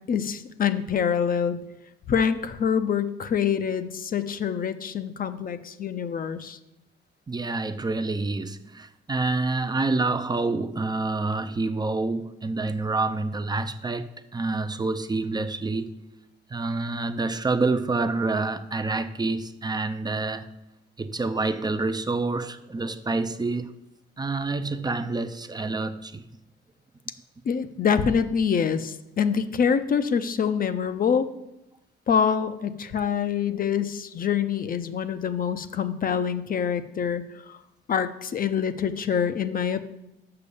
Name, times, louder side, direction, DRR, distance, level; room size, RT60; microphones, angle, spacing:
voice 1, 0.1-1.6 2.1-6.6 27.4-31.3 32.1-37.6 37.9-39.8, left 7 dB, 45° left, 0.7 m, -25 dB
voice 2, 7.3-15.9 16.5-20.5 21.0-23.8 24.2-26.2, right 3 dB, 20° right, 0.5 m, -27 dB
6.8 x 6.1 x 6.9 m
cardioid pair, 90°, 20 cm